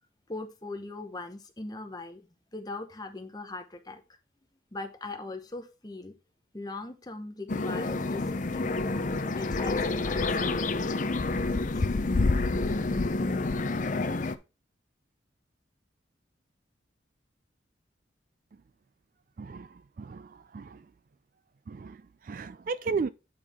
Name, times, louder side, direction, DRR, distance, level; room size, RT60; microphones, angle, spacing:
voice 1, 0.3-2.3 2.5-4.0 4.7-6.1 6.5-8.8 9.3-10.9 11.7-12.0, left 2 dB, 20° left, 0.9 m, -40 dB
sound 1, 7.5-14.4, left 3 dB, 40° left, 0.5 m, -28 dB
voice 2, 19.4-20.8 21.7-23.1, right 5 dB, 45° right, 0.3 m, -35 dB
8.6 x 4.6 x 3.6 m
head